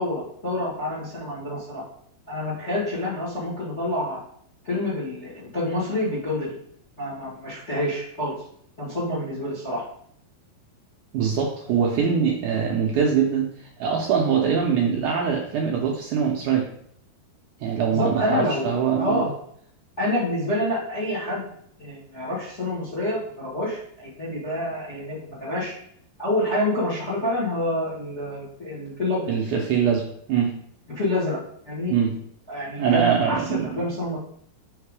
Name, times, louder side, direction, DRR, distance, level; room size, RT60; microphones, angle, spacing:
voice 1, 0.0-1.8 2.3-4.2 4.6-6.5 7.0-8.3 8.8-9.8 17.9-19.3 20.0-21.5 21.8-25.7 26.2-29.3 30.9-31.4 31.6-31.9 32.5-34.2, left 1 dB, 30° left, -7 dB, 1.2 m, -27 dB
voice 2, 11.1-13.5 13.8-16.7 17.6-19.3 29.3-30.6 31.9-32.2 32.8-33.9, right 7 dB, 75° right, -1 dB, 1.9 m, -23 dB
5.7 x 3.6 x 4.7 m, 0.68 s
omnidirectional pair, 4.2 m